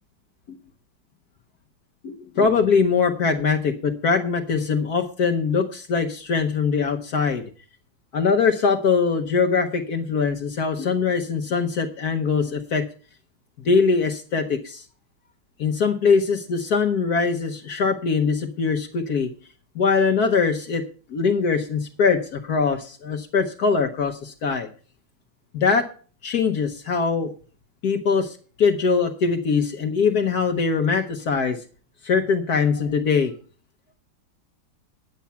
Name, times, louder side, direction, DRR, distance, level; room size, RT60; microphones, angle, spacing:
voice 1, 2.0-7.5 8.1-12.9 13.6-14.8 15.6-19.3 19.7-20.8 21.1-24.7 25.5-25.9 26.2-27.3 27.8-31.6 32.0-33.3, left 5 dB, 55° left, 4 dB, 1.2 m, -22 dB
9.7 x 9.4 x 5.7 m, 0.40 s
omnidirectional pair, 2.3 m